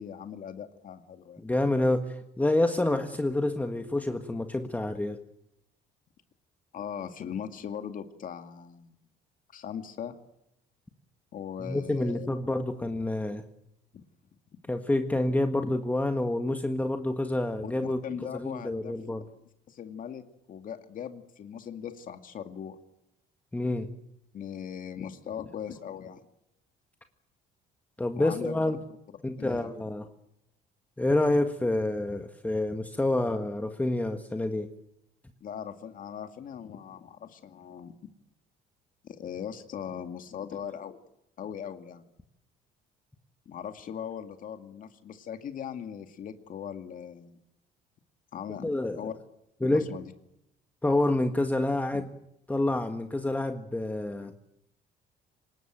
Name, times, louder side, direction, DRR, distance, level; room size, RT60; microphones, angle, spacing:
voice 1, 0.0-1.4 6.7-9.0 9.5-10.2 11.3-12.3 13.9-14.0 17.6-19.0 19.7-20.2 20.5-22.8 24.3-26.2 28.2-28.8 29.4-29.7 35.4-37.9 39.0-41.0 41.4-42.0 43.5-47.4 48.3-49.1 49.6-50.1 51.9-52.0, left 8 dB, 55° left, 7 dB, 2.2 m, -39 dB
voice 2, 1.4-5.2 11.6-13.4 14.7-18.0 18.3-19.2 23.5-23.9 28.0-28.8 29.2-30.1 31.0-34.7 48.6-49.0 49.6-49.9 50.8-52.1 52.5-54.3, left 2 dB, 10° left, 7 dB, 1.6 m, -28 dB
25.0 x 20.5 x 9.1 m, 0.82 s
cardioid pair, 110°, 17 cm